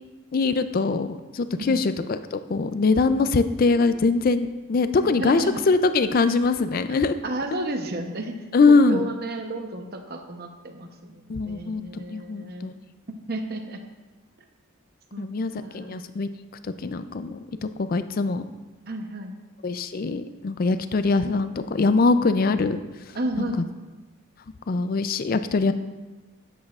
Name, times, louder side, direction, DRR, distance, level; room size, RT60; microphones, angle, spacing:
voice 1, 0.3-7.2 8.5-9.1 11.3-12.7 15.2-16.3 16.8-18.4 19.6-22.8 23.6-23.7 24.7-25.7, left 3 dB, 45° left, 11 dB, 0.4 m, -22 dB
voice 2, 4.9-5.6 7.2-12.7 13.1-13.8 15.1-15.3 15.6-16.0 18.9-19.3 23.1-23.7, right 1 dB, 45° right, 5 dB, 0.8 m, -32 dB
11.0 x 8.6 x 2.4 m, 1.2 s
head